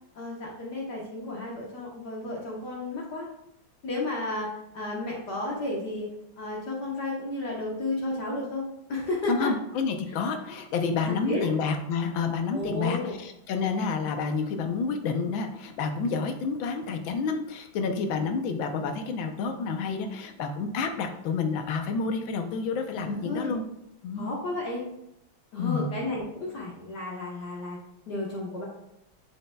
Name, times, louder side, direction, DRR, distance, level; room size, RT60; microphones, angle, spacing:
voice 1, 0.1-3.3 3.8-6.1 6.4-8.6 8.9-9.5 11.0-11.5 12.5-13.2 23.0-23.5 24.1-24.8 25.5-27.8 28.1-28.7, left 2 dB, 60° left, -3 dB, 1.7 m, -32 dB
voice 2, 9.3-23.6 24.0-24.3 25.6-25.9, left 5 dB, 75° left, 6 dB, 1.5 m, -29 dB
6.9 x 6.7 x 2.3 m, 0.83 s
omnidirectional pair, 2.2 m